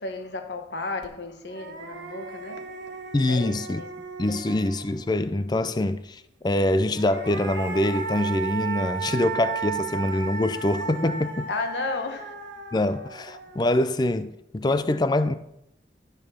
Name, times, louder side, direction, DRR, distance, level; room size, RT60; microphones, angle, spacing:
voice 1, 0.0-2.6 3.3-3.9 4.3-4.6 11.5-12.3, left 3 dB, 75° left, 1.2 m, -33 dB
sound 1, 1.0-1.1 1.5-5.2 6.8-14.1, right 5 dB, 90° right, 1.6 m, -35 dB
voice 2, 3.1-3.8 4.2-11.5 12.7-15.4, left 1 dB, 25° left, 0.4 m, -24 dB
11.5 x 5.3 x 6.2 m
head